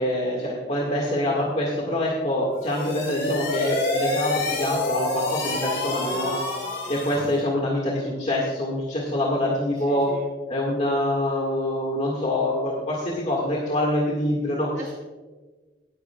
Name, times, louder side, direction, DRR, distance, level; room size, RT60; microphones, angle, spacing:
voice 1, 0.0-6.3 6.9-10.1 10.5-14.7, left 1 dB, 40° left, -3 dB, 1.8 m, -25 dB
sound 1, 2.5-7.4, left 2 dB, 65° left, 3.7 m, -27 dB
voice 2, 6.0-7.0 9.9-10.3 14.7-14.9, right 1 dB, 45° right, 0 dB, 0.8 m, -38 dB
18.0 x 10.0 x 2.3 m, 1.3 s
head